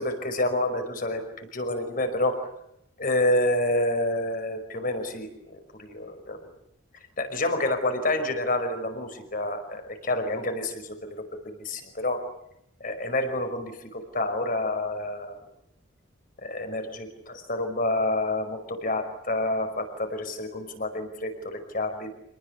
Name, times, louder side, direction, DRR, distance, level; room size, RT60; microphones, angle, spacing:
voice 1, 0.0-2.5 3.0-6.4 7.2-12.2 12.8-15.4 16.4-22.1, left 1 dB, 45° left, 7 dB, 5.3 m, -28 dB
28.0 x 19.5 x 9.8 m, 0.77 s
head